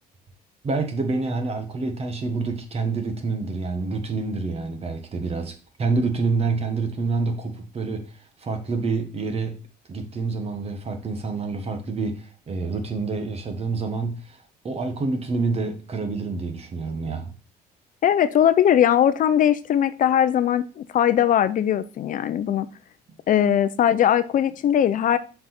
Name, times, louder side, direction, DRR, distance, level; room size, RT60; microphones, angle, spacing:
voice 1, 0.6-8.1 8.4-9.6 9.9-14.4 14.6-17.3, right 3 dB, 35° right, 1.6 m, -27 dB
voice 2, 18.0-22.7 23.3-25.2, left 10 dB, 50° left, 0.6 m, -20 dB
7.3 x 4.8 x 4.3 m
cardioid pair, 110°, 17 cm